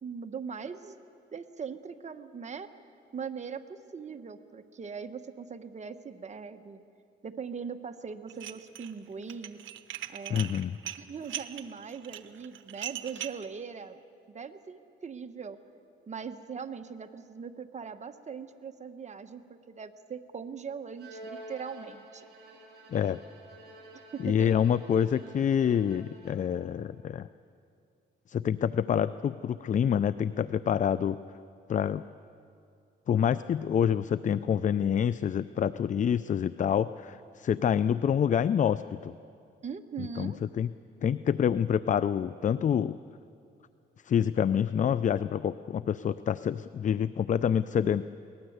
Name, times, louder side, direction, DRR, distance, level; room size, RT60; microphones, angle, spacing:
voice 1, 0.0-1.0 1.3-2.7 3.1-6.8 7.2-9.6 10.1-10.5 11.0-14.0 14.3-15.6 16.1-22.3 23.9-24.5 39.6-40.4, right 6 dB, 35° right, 8 dB, 1.2 m, -40 dB
Dishes pots and pans, 8.3-8.9 9.2-13.5, right 12 dB, 80° right, 1.0 m, -40 dB
voice 2, 10.3-10.8 22.9-23.2 24.2-27.3 28.3-31.2 31.7-32.0 33.1-39.1 40.2-40.7 41.0-43.0 44.0-48.0, left 8 dB, 40° left, 15 dB, 0.5 m, -27 dB
Bowed string instrument, 21.0-26.7, right 1 dB, 60° right, 7.9 m, -49 dB
23.0 x 19.0 x 8.0 m, 2.6 s
cardioid pair, 90°, 20 cm